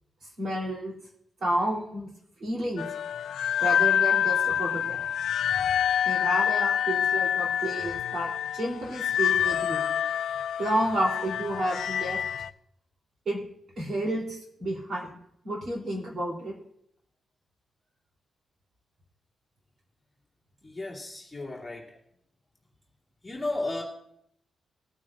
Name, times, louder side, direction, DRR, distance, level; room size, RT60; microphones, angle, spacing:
voice 1, 0.4-0.9 1.4-2.1 2.4-2.8 3.6-5.0 5.5-5.6 6.0-9.9 10.6-12.2 13.2-13.4 13.8-15.2 15.4-16.5, right 1 dB, 50° right, -2 dB, 3.3 m, -30 dB
sound 1, 2.8-12.5, left 9 dB, 85° left, 0.4 m, -27 dB
voice 2, 20.6-22.0 23.2-23.8, left 2 dB, 10° left, -5 dB, 2.6 m, -34 dB
20.5 x 9.1 x 2.5 m, 0.72 s
wide cardioid pair, 150°, 0 cm